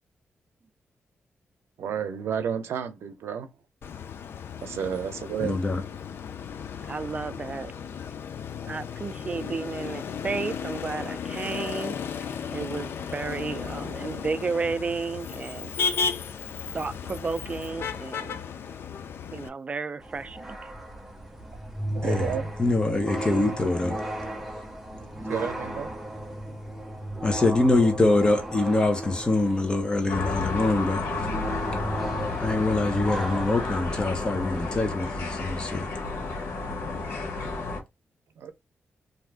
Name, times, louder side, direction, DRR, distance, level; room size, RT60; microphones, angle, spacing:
voice 1, 1.8-3.5 4.6-5.6 21.9-22.5 25.0-25.9 38.4-38.5, right 8 dB, 90° right, 0.6 m, -31 dB
Motor vehicle (road), 3.8-19.5, left 6 dB, 70° left, 0.4 m, -34 dB
voice 2, 5.4-5.8 22.0-22.3 22.6-24.0 27.2-31.0 32.4-35.9, left 2 dB, 20° left, 1.0 m, -24 dB
voice 3, 6.9-7.7 8.7-12.0 12.5-15.8 16.7-18.4 19.3-20.7, right 4 dB, 30° right, 0.3 m, -32 dB
sound 1, 20.0-34.8, right 1 dB, 5° right, 0.7 m, -35 dB
sound 2, 30.1-37.8, left 3 dB, 85° left, 1.0 m, -31 dB
2.6 x 2.4 x 3.3 m
wide cardioid pair, 120°, 4 cm